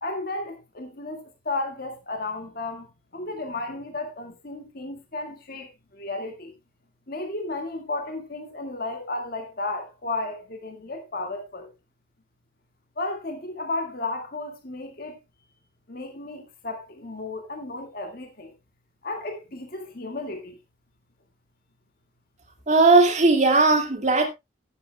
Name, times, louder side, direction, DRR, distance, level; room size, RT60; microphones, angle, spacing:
voice 1, 0.0-6.5 7.1-11.7 13.0-15.2 15.9-18.5 19.0-20.6 24.1-24.2, left 2 dB, 50° left, 1.8 m, -33 dB
voice 2, 22.7-24.3, right 3 dB, 40° right, 2.2 m, -18 dB
18.0 x 7.8 x 2.2 m
head